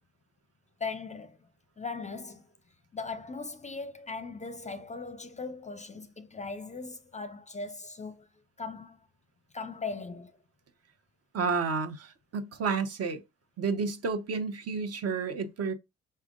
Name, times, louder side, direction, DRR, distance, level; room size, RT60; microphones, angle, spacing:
voice 1, 0.8-1.5 1.8-2.5 2.9-8.3 8.6-9.1 9.5-10.3, left 4 dB, 25° left, 0.5 m, -39 dB
voice 2, 11.3-13.2 13.6-15.7, right 5 dB, 55° right, 1.0 m, -31 dB
5.4 x 3.4 x 2.5 m
cardioid pair, 90°, 30 cm